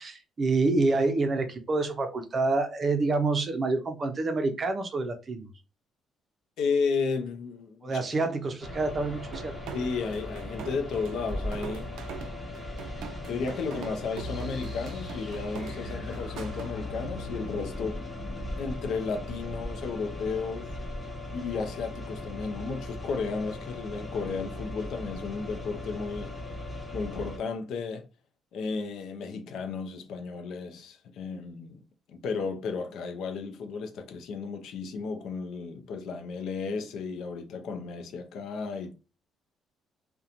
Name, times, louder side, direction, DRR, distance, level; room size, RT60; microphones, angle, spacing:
voice 1, 0.0-5.5 7.8-9.5, right 3 dB, 30° right, 0.5 m, -27 dB
voice 2, 6.6-8.3 9.7-12.0 13.2-18.0 18.6-20.7 21.3-26.3 26.9-28.0 28.5-31.8 32.1-38.9, left 4 dB, 70° left, 0.5 m, -33 dB
sound 1, 8.6-27.4, left 1 dB, 10° left, 0.8 m, -39 dB
sound 2, 9.3-16.7, right 8 dB, 90° right, 0.4 m, -43 dB
sound 3, 14.1-20.9, left 3 dB, 50° left, 1.3 m, -42 dB
2.8 x 2.2 x 2.5 m
cardioid pair, 155°, 0 cm